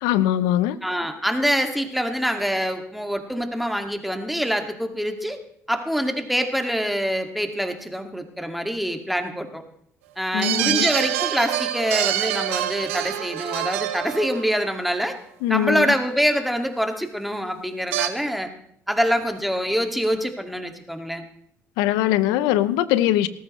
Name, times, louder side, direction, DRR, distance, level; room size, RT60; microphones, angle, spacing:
voice 1, 0.0-0.8 10.3-10.9 15.4-15.9 21.8-23.3, left 13 dB, 80° left, 16 dB, 0.7 m, -21 dB
voice 2, 0.8-5.4 5.7-9.6 10.2-15.2 15.5-18.5 18.9-21.2, equal, ahead, 5 dB, 2.1 m, -25 dB
sound 1, 10.4-14.9 17.9-18.1, right 13 dB, 85° right, 0.8 m, -26 dB
18.0 x 14.0 x 3.2 m, 0.68 s
hypercardioid pair, 55°, 7 cm